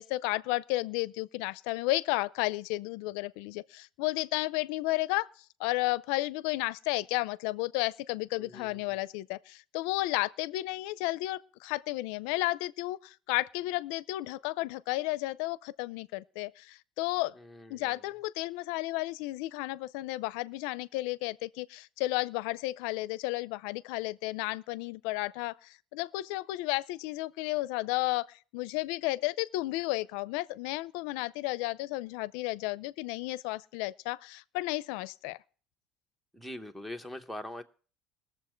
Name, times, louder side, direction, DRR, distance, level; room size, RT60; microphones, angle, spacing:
voice 1, 0.0-5.3 5.6-17.3 17.7-35.4, left 19 dB, 85° left, 0.5 m, -33 dB
voice 2, 8.3-9.0 17.3-18.0 36.3-37.6, left 1 dB, 5° right, 0.9 m, -43 dB
21.0 x 7.1 x 4.5 m
cardioid pair, 155°, 0 cm